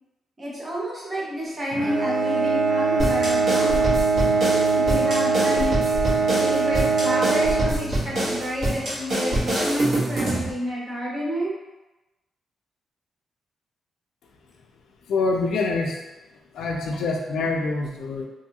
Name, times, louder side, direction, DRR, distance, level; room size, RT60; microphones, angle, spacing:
voice 1, 0.4-4.1 4.7-5.7 6.4-11.5, equal, 20° right, -5 dB, 0.7 m, -29 dB
Bowed string instrument, 1.7-8.4, right 4 dB, 65° right, 0.4 m, -22 dB
sound 1, 3.0-10.5, right 1 dB, 50° right, 1.2 m, -26 dB
voice 2, 15.1-16.0 16.5-18.3, left 3 dB, 75° left, 2 dB, 0.4 m, -25 dB
2.6 x 2.3 x 2.8 m, 1.0 s
wide cardioid pair, 175°, 0 cm